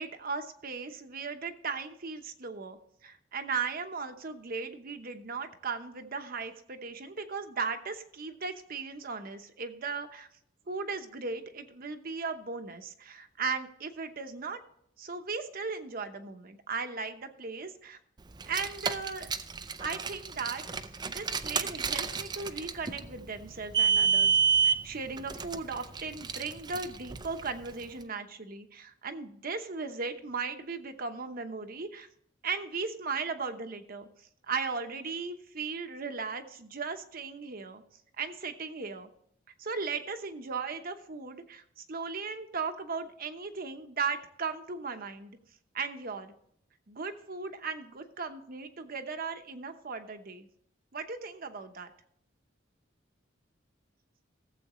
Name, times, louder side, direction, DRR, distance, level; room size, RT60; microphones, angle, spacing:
voice 1, 0.0-10.3 10.7-14.6 15.0-18.0 18.5-19.3 19.8-20.6 21.1-32.1 32.4-34.1 34.5-37.8 38.2-39.1 39.6-45.4 45.7-46.3 46.9-50.5 50.9-51.9, right 4 dB, 50° right, 7 dB, 1.0 m, -37 dB
Car, 18.3-27.8, right 6 dB, 20° right, 0.5 m, -30 dB
16.5 x 7.7 x 3.1 m, 0.69 s
head